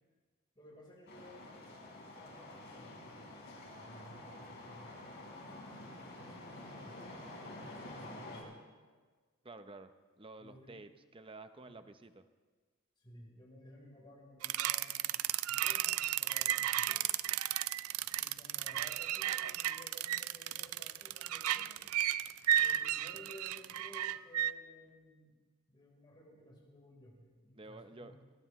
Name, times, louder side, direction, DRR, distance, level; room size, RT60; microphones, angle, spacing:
voice 1, 0.5-1.5 2.1-3.1 3.8-5.2 5.8-8.6 10.4-10.8 11.6-11.8 13.0-15.2 15.5-17.1 18.2-21.9 22.5-25.4 25.7-28.1, equal, 20° left, -3 dB, 4.1 m, -56 dB
sound 1, 1.1-8.4, left 1 dB, 50° left, 4.9 m, -49 dB
voice 2, 9.4-9.9 10.2-12.3 22.2-22.4 27.5-28.2, right 2 dB, 25° right, 9 dB, 0.7 m, -51 dB
sound 2, 14.4-24.5, right 12 dB, 80° right, 0.4 m, -33 dB
21.5 x 20.5 x 3.1 m, 1.4 s
head